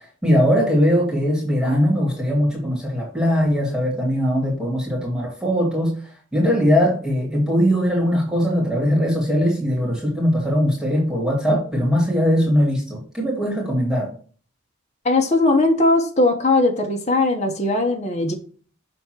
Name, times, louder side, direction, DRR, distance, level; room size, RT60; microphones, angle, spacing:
voice 1, 0.0-5.9 6.3-14.1, equal, 5° right, -5 dB, 2.6 m, -20 dB
voice 2, 15.0-18.3, left 2 dB, 35° left, 2 dB, 0.9 m, -19 dB
7.1 x 3.5 x 4.5 m, 0.42 s
head